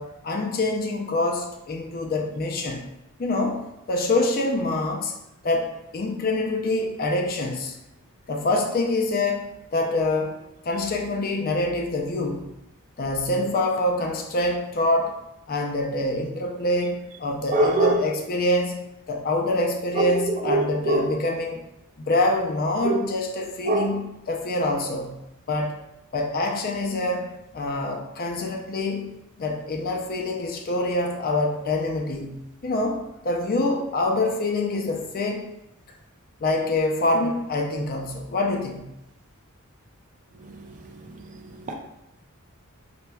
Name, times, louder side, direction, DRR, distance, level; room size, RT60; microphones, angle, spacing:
voice 1, 0.0-2.9 3.2-3.6 3.9-5.1 5.4-7.7 8.3-12.5 13.0-15.1 15.5-18.8 19.1-21.6 22.0-25.2 25.5-25.8 26.1-29.1 29.4-35.5 36.4-38.9, left 2 dB, 40° left, 3 dB, 0.4 m, -25 dB
voice 2, 17.5-18.0 20.0-20.2 20.5-21.1 22.9-23.0 23.7-23.9 41.7-41.8, right 2 dB, 35° right, 2 dB, 0.4 m, -22 dB
4.2 x 2.9 x 2.2 m, 0.88 s
head